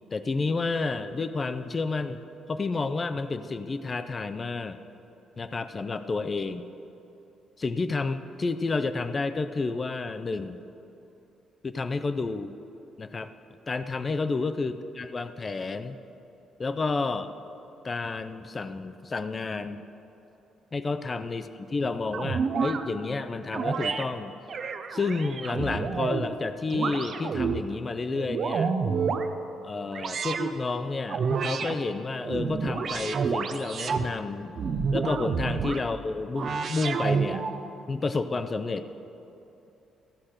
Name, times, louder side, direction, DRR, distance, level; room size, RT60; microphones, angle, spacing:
voice 1, 0.1-2.2 2.5-4.8 5.4-6.7 7.6-10.6 11.6-12.5 13.0-13.3 13.7-16.0 16.6-17.3 17.8-19.8 20.7-24.3 24.9-28.8 29.6-34.6 34.9-37.4 37.9-38.9, left 3 dB, 35° left, 11 dB, 0.5 m, -30 dB
sound 1, 22.1-22.8 23.5-24.0 24.5-26.3 26.7-27.6 28.1-29.3 29.9-30.5 31.1-31.7 32.2-34.1 34.6-35.8 36.3-37.6, right 5 dB, 55° right, 0.7 m, -29 dB
14.5 x 5.7 x 6.5 m, 2.9 s
cardioid pair, 90°, 0 cm